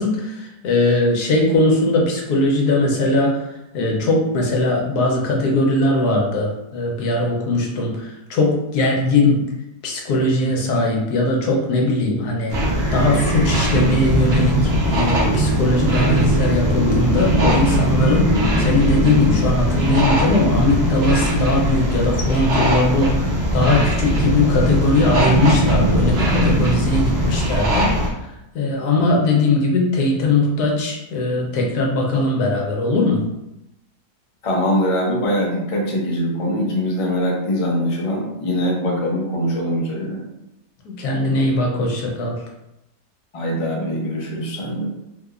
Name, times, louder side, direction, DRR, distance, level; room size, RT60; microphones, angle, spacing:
voice 1, 0.0-3.4 3.7-9.4 9.8-12.6 12.9-27.9 28.5-33.2 40.8-42.4, left 2 dB, 75° left, -1 dB, 1.2 m, -20 dB
sound 1, 12.5-28.1, equal, 50° right, 0.8 m, -19 dB
voice 2, 34.4-40.2 43.3-44.8, equal, 45° left, -2 dB, 0.4 m, -22 dB
3.5 x 2.8 x 2.4 m, 0.89 s
omnidirectional pair, 1.7 m